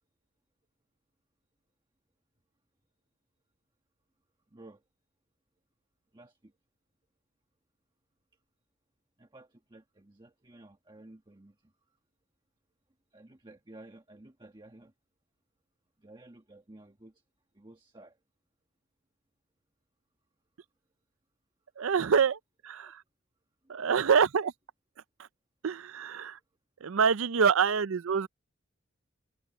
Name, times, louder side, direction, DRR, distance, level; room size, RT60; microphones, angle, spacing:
voice 1, 4.5-4.8 6.1-6.5 9.2-11.7 13.1-14.9 16.0-17.2 17.5-18.2 22.8-22.9 23.6-23.7, right 2 dB, 20° right, 1.3 m, -53 dB
voice 2, 21.8-23.0 23.7-24.5 25.2-25.3 25.6-26.4 26.8-28.3, right 6 dB, 70° right, 0.5 m, -26 dB
head